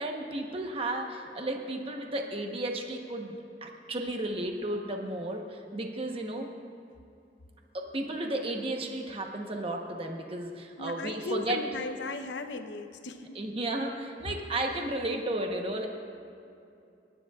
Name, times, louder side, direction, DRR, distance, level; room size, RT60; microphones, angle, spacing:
voice 1, 0.0-3.3 3.6-6.5 7.7-11.7 13.3-15.9, right 1 dB, 30° right, 2 dB, 1.0 m, -33 dB
voice 2, 10.8-13.4, left 3 dB, 85° left, 8 dB, 0.7 m, -37 dB
30.0 x 10.0 x 2.4 m, 2.6 s
head